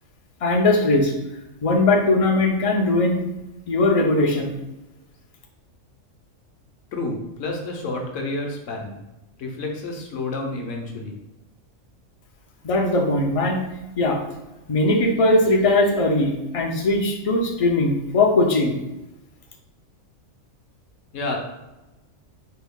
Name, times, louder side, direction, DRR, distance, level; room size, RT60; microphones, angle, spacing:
voice 1, 0.4-1.1 1.6-3.2 3.7-4.5 12.6-13.6 14.0-14.2 14.7-18.7, left 2 dB, 50° left, 1 dB, 0.4 m, -19 dB
voice 2, 6.9-9.0 9.4-11.2 21.1-21.4, left 2 dB, 75° left, 1 dB, 1.1 m, -29 dB
4.5 x 2.3 x 3.5 m, 1.0 s
omnidirectional pair, 1.4 m